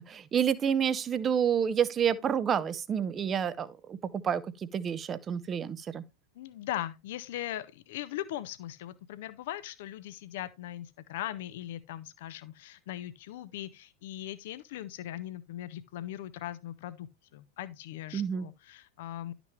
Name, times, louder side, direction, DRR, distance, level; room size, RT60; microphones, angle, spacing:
voice 1, 0.1-6.0 18.1-18.5, right 8 dB, 25° right, 0.8 m, -29 dB
voice 2, 6.3-19.3, left 13 dB, 55° left, 0.8 m, -39 dB
11.5 x 6.1 x 3.2 m
figure-of-eight pair, 90°, 0 cm